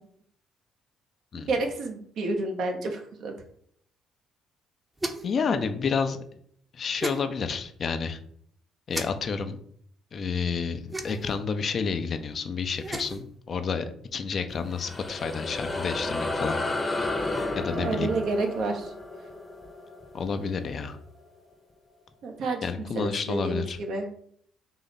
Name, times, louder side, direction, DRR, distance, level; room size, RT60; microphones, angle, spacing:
voice 1, 1.3-3.3 17.7-18.9 22.2-24.1, right 3 dB, 65° right, 3 dB, 1.0 m, -30 dB
sound 1, 5.0-5.4 7.0-7.2 8.9-9.1 10.9-11.4 12.7-13.2, right 1 dB, 20° right, 0.8 m, -33 dB
voice 2, 5.2-6.2 6.7-8.2 8.9-9.6 10.1-16.9 17.6-18.1 20.1-21.0 22.6-23.8, left 5 dB, 50° left, 8 dB, 0.6 m, -30 dB
sound 2, 14.5-21.3, left 2 dB, 20° left, 0.9 m, -33 dB
3.9 x 2.9 x 4.2 m, 0.63 s
hypercardioid pair, 60°, 0 cm